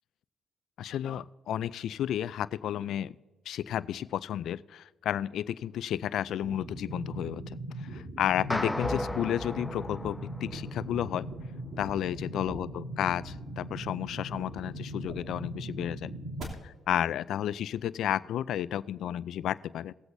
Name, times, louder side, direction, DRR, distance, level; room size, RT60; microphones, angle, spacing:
voice 1, 0.8-3.2 3.5-11.3 11.8-16.1 16.6-19.9, left 11 dB, 75° left, 17 dB, 0.3 m, -32 dB
sound 1, 6.4-16.4, right 1 dB, 60° right, 2.9 m, -40 dB
sound 2, 8.5-11.0, left 1 dB, 10° left, 0.4 m, -35 dB
20.0 x 7.9 x 2.7 m, 1.2 s
cardioid pair, 90°, 0 cm